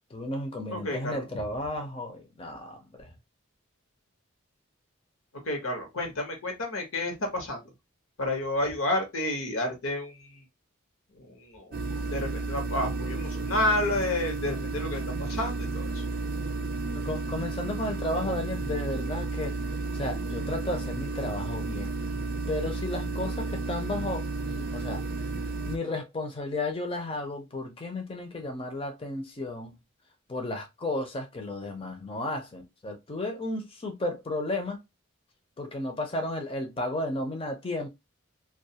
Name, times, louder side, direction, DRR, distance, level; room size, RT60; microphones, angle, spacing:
voice 1, 0.1-3.1 16.9-19.5 19.9-22.0 22.5-25.0 25.7-29.8 30.3-34.8 35.6-37.9, left 2 dB, 25° left, 0.5 m, -33 dB
voice 2, 0.7-1.3 5.5-7.6 8.2-10.4 11.3-16.0, left 1 dB, 75° left, 0.9 m, -30 dB
sound 1, 11.7-25.8, right 3 dB, 45° right, 0.4 m, -32 dB
2.3 x 2.3 x 2.7 m
head